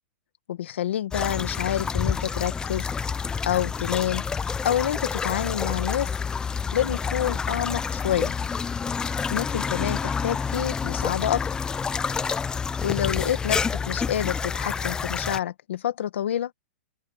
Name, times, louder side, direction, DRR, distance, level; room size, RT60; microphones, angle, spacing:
voice 1, 0.5-2.9 3.4-4.3 4.6-6.2 6.7-8.3 9.3-11.5 12.8-16.5, left 11 dB, 75° left, 1.8 m, -28 dB
sound 1, 1.1-15.4, left 5 dB, 10° left, 0.6 m, -28 dB
open air
hypercardioid pair, 145°, 7 cm